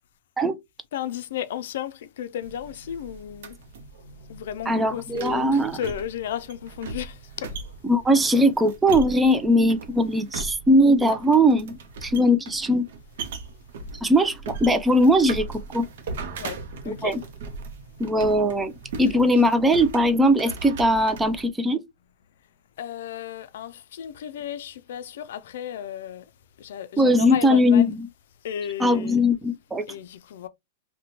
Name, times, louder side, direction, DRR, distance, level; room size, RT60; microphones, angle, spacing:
voice 1, 0.9-3.6 4.3-7.6 16.4-17.2 19.1-19.4 22.8-26.2 26.6-28.0 28.4-29.2 29.9-30.5, left 10 dB, 70° left, 0.4 m, -34 dB
sound 1, 2.4-21.5, right 4 dB, 70° right, 0.6 m, -39 dB
voice 2, 4.7-5.8 7.8-12.9 14.0-15.9 16.9-17.2 18.0-18.7 19.0-21.8 27.0-28.0 28.8-29.8, equal, 10° right, 0.4 m, -20 dB
2.8 x 2.1 x 2.8 m
hypercardioid pair, 120°, 0 cm